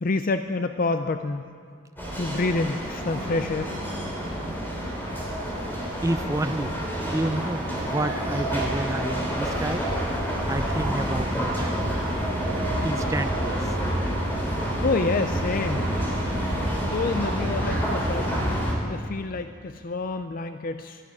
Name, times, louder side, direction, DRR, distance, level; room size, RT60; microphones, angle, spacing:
voice 1, 0.0-1.5 2.2-3.7 14.8-15.9 16.8-18.5 18.8-21.0, left 3 dB, 45° left, 8 dB, 0.5 m, -28 dB
sound 1, 2.0-18.7, equal, 10° left, 3.0 m, -28 dB
voice 2, 5.7-6.7 7.1-9.9 10.5-12.0 12.8-13.7, right 1 dB, 15° right, 10 dB, 0.4 m, -30 dB
12.5 x 11.0 x 9.6 m, 2.1 s
head